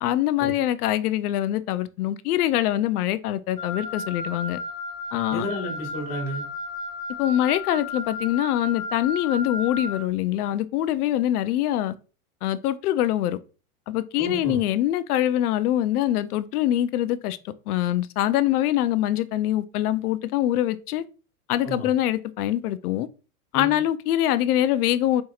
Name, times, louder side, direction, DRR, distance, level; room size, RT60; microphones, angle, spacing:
voice 1, 0.0-4.6 5.1-5.4 7.2-11.9 12.4-13.4 13.9-17.4 17.7-21.0 21.5-23.1 23.5-25.2, left 13 dB, 80° left, 0.5 m, -24 dB
Wind instrument woodwind instrument, 3.6-10.0, left 3 dB, 5° left, 0.7 m, -34 dB
voice 2, 5.3-6.4 14.2-14.6 21.6-21.9 23.5-23.8, equal, 30° left, 1.5 m, -31 dB
4.5 x 2.8 x 2.4 m
supercardioid pair, 150°, 45 cm